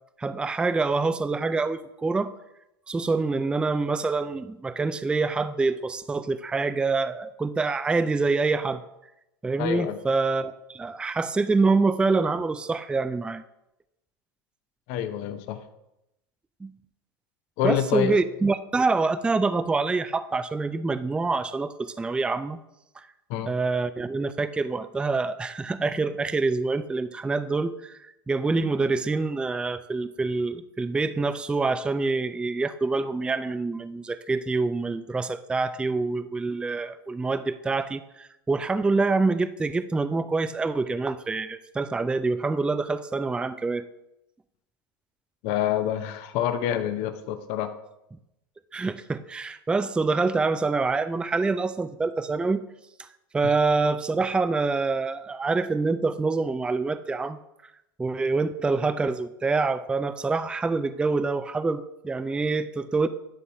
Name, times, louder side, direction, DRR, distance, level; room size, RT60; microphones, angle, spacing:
voice 1, 0.2-2.3 2.9-8.8 9.4-13.4 16.6-16.7 17.6-22.6 23.4-28.0 28.3-43.8 48.7-52.6 53.0-53.1 53.3-57.4 58.0-63.1, right 3 dB, 5° right, 13 dB, 0.3 m, -26 dB
voice 2, 9.6-10.0 14.9-15.6 17.6-18.2 23.3-23.5 45.4-47.7, left 10 dB, 55° left, 9 dB, 0.8 m, -27 dB
10.0 x 4.1 x 4.6 m, 0.87 s
hypercardioid pair, 100°, 13 cm